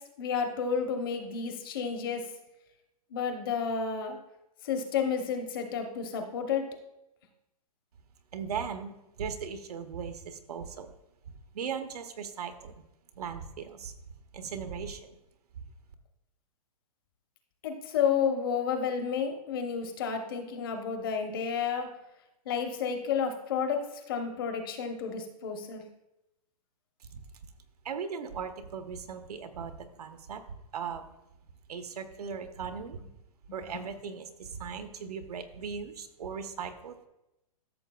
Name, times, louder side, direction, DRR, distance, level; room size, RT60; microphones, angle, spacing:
voice 1, 0.2-2.2 3.1-4.2 4.6-6.6 17.6-21.9 22.5-25.8, left 6 dB, 35° left, 5 dB, 0.9 m, -31 dB
voice 2, 8.3-10.9 11.5-12.8 13.1-13.9 14.3-15.1 27.0-27.2 27.8-31.1 31.7-33.0 33.5-37.1, right 6 dB, 80° right, 8 dB, 1.0 m, -38 dB
13.5 x 6.8 x 2.3 m, 0.91 s
hypercardioid pair, 175°, 20 cm